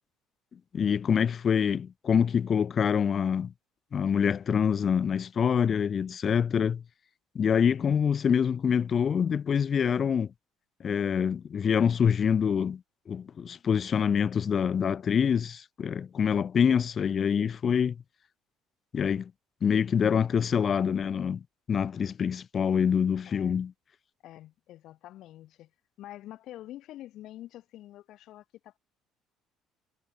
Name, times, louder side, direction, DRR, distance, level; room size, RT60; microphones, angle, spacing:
voice 1, 0.7-3.5 3.9-6.8 7.3-10.3 10.8-18.0 18.9-19.3 19.6-23.7, left 7 dB, 30° left, 0.6 m, -26 dB
voice 2, 7.6-8.1 22.6-23.0 23.3-23.6 24.2-25.7 26.0-28.8, left 14 dB, 55° left, 5.0 m, -47 dB
cardioid pair, 160°, 0 cm